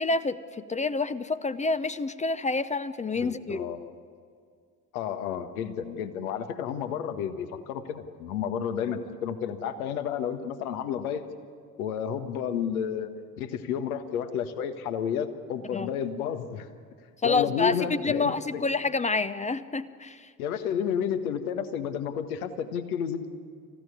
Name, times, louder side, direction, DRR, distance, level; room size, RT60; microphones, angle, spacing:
voice 1, 0.0-3.7 15.7-15.9 17.2-20.3, left 3 dB, 15° left, 13 dB, 0.8 m, -28 dB
voice 2, 3.1-3.9 4.9-11.3 11.8-13.1 13.4-16.7 17.2-18.6 20.4-23.3, left 8 dB, 65° left, 9 dB, 1.6 m, -31 dB
28.0 x 15.5 x 9.8 m, 2.2 s
figure-of-eight pair, 60°, 46 cm